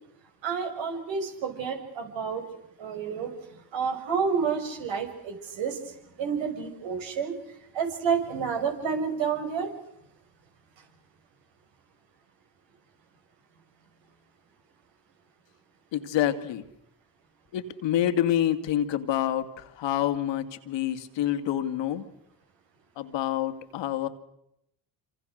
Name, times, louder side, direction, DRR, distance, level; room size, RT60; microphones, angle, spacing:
voice 1, 0.4-2.4 2.8-3.3 3.7-7.3 7.7-9.7, right 6 dB, 65° right, 4 dB, 6.8 m, -29 dB
voice 2, 15.9-16.6 17.5-22.1 23.0-24.1, left 11 dB, 65° left, 9 dB, 2.3 m, -27 dB
27.0 x 27.0 x 6.6 m, 0.81 s
hypercardioid pair, 60°, 48 cm